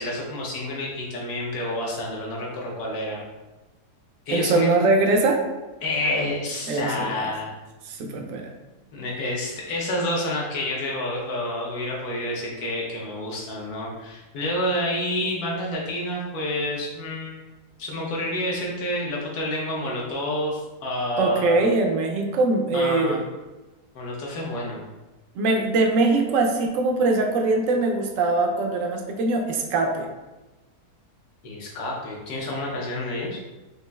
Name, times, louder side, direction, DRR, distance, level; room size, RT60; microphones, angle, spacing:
voice 1, 0.0-3.2 4.3-4.7 5.8-7.5 8.9-17.4 17.8-21.6 22.7-23.2 23.9-24.8 31.4-33.4, left 1 dB, 70° left, -3 dB, 1.3 m, -29 dB
voice 2, 4.3-5.4 6.7-7.3 7.9-8.5 21.2-23.2 25.3-30.1, right 3 dB, 70° right, 2 dB, 0.8 m, -22 dB
5.1 x 2.5 x 2.2 m, 1.1 s
omnidirectional pair, 1.7 m